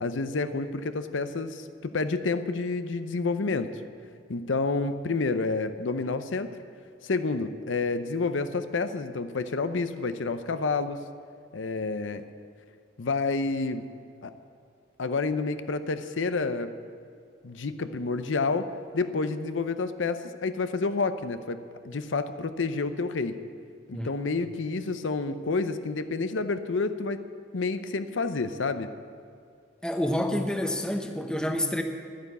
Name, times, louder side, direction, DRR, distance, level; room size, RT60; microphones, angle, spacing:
voice 1, 0.0-3.7 4.3-6.5 7.0-11.0 11.5-12.2 13.0-13.8 14.2-14.3 15.0-16.7 17.4-18.7 18.9-21.6 21.8-23.4 23.9-27.2 27.5-28.9, left 3 dB, 85° left, 10 dB, 0.7 m, -29 dB
voice 2, 29.8-31.8, left 1 dB, 5° left, 5 dB, 0.8 m, -28 dB
11.5 x 10.0 x 8.2 m, 2.3 s
head